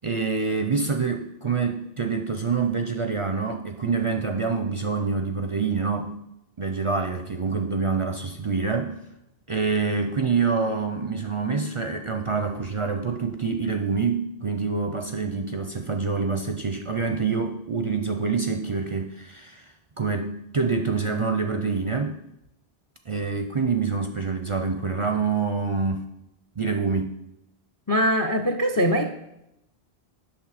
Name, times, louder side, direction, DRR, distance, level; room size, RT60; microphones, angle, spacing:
voice 1, 0.0-6.1 6.6-9.0 9.5-19.7 20.0-22.2 23.1-26.0 26.6-27.2, right 5 dB, 40° right, 5 dB, 0.4 m, -26 dB
voice 2, 27.9-29.1, equal, 30° left, 6 dB, 0.3 m, -22 dB
8.8 x 6.4 x 4.1 m, 0.85 s
omnidirectional pair, 1.1 m